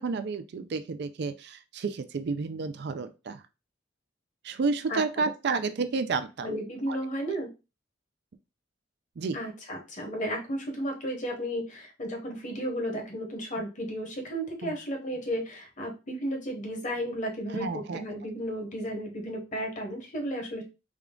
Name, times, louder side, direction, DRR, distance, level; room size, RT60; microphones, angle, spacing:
voice 1, 0.0-3.4 4.4-6.5 6.9-7.0 9.2-9.4 14.6-14.8 17.5-18.0, right 4 dB, 60° right, 10 dB, 0.4 m, -31 dB
voice 2, 4.9-5.2 6.4-7.5 9.3-20.6, equal, 40° left, 2 dB, 1.0 m, -33 dB
3.6 x 2.3 x 3.6 m, 0.28 s
head